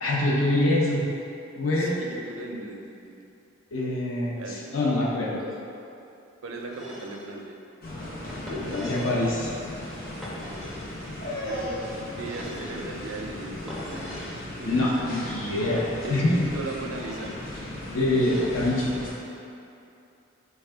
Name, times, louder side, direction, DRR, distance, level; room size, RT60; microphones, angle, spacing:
voice 1, 0.0-1.0 1.6-1.9 3.7-5.4 8.4-9.5 14.6-15.8 16.1-16.5 17.9-18.9, left 1 dB, 85° left, -5 dB, 0.6 m, -25 dB
voice 2, 1.8-3.3 4.4-4.7 6.4-7.6 11.1-11.7 12.2-14.1 14.3-15.1 16.0-17.3, right 2 dB, 90° right, 1 dB, 0.4 m, -38 dB
sound 1, 6.7-7.3 8.3-9.3 10.2-10.9 12.2-12.9 13.7-14.4 15.3-16.0 16.9-17.4 18.2-18.7, equal, ahead, 0.4 m, -42 dB
sound 2, 7.8-19.1, left 1 dB, 45° left, 0.7 m, -36 dB
4.3 x 2.2 x 3.4 m, 2.7 s
head